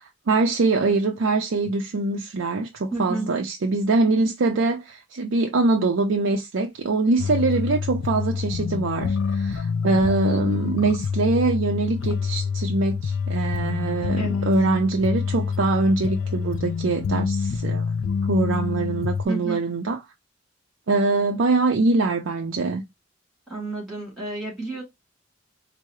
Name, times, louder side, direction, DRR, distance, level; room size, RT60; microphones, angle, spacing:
voice 1, 0.0-17.8 18.2-20.0 20.9-22.8, right 3 dB, 85° right, 0.5 m, -23 dB
voice 2, 2.9-3.3 14.2-14.5 19.2-19.6 23.5-24.8, right 2 dB, ahead, 2.1 m, -31 dB
sound 1, 7.2-19.2, left 5 dB, 80° left, 0.3 m, -26 dB
4.5 x 2.0 x 3.0 m
head